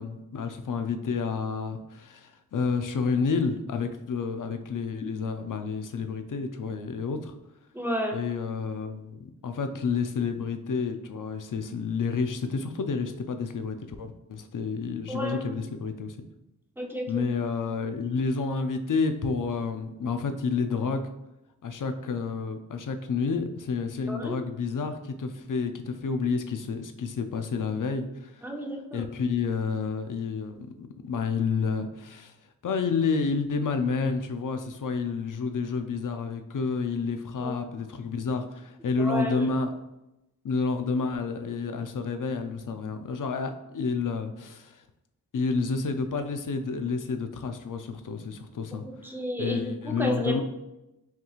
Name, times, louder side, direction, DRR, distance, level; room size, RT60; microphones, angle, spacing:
voice 1, 0.0-7.3 8.1-16.2 17.1-21.1 21.6-28.5 28.9-32.3 32.6-39.7 40.4-44.8 45.3-48.8 49.4-50.4, left 5 dB, 60° left, 7 dB, 0.5 m, -30 dB
voice 2, 7.7-8.2 15.1-15.5 16.8-17.3 24.1-24.4 28.4-29.1 37.4-37.6 39.0-39.5 49.0-50.4, equal, 5° right, 0 dB, 0.7 m, -32 dB
5.7 x 3.0 x 2.4 m, 0.92 s
wide cardioid pair, 65°, 36 cm